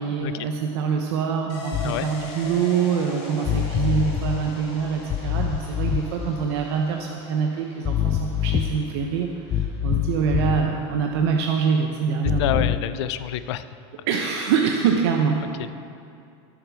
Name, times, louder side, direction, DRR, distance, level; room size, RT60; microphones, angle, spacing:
voice 1, 0.0-12.7 14.1-15.4, right 6 dB, 65° right, 2 dB, 0.9 m, -25 dB
sound 1, 1.5-10.9 11.2-11.3, left 3 dB, 45° left, 2.7 m, -42 dB
sound 2, 1.7-1.9 3.4-4.4 5.1-6.3 7.8-8.9 9.5-10.7 12.2-12.8, left 10 dB, 20° left, 0.3 m, -25 dB
voice 2, 12.4-13.7 15.4-15.7, left 12 dB, 75° left, 13 dB, 0.6 m, -28 dB
17.0 x 7.6 x 4.9 m, 2.5 s
supercardioid pair, 160°, 14 cm